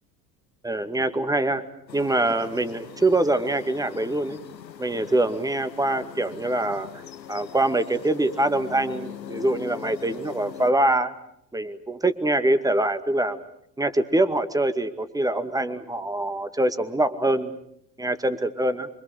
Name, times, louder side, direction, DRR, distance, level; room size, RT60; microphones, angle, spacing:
voice 1, 0.6-1.6 1.9-4.4 4.8-6.9 7.3-11.1 11.5-13.4 13.8-17.5 18.0-18.9, right 1 dB, 5° right, 10 dB, 2.1 m, -24 dB
sound 1, 1.9-10.7, left 9 dB, 90° left, 1.0 m, -41 dB
28.5 x 24.5 x 6.5 m, 0.74 s
figure-of-eight pair, 65°, 49 cm